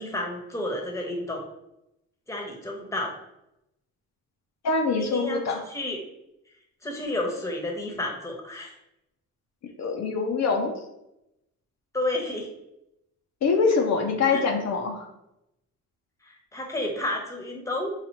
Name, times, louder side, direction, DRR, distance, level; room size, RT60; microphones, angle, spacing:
voice 1, 0.0-1.4 2.3-3.1 5.0-6.0 6.8-8.7 11.9-12.5 14.3-14.4 16.3-17.9, left 1 dB, 10° left, 0 dB, 1.0 m, -31 dB
voice 2, 4.6-5.6 9.8-10.7 13.4-15.1, left 4 dB, 60° left, 2 dB, 0.8 m, -24 dB
5.7 x 2.4 x 2.9 m, 0.85 s
cardioid pair, 90°, 30 cm